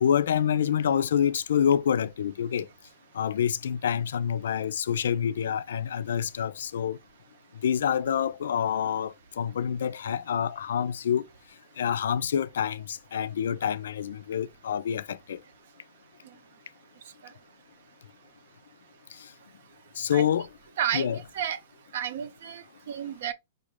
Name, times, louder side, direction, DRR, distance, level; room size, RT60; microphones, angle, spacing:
voice 1, 0.0-2.7 3.1-7.0 7.6-11.2 11.8-15.4 20.0-20.5 20.9-21.2, left 8 dB, 85° left, 0.4 m, -27 dB
voice 2, 20.8-21.6 21.9-23.3, right 10 dB, 60° right, 0.7 m, -31 dB
5.1 x 2.5 x 3.2 m
hypercardioid pair, 165°, 0 cm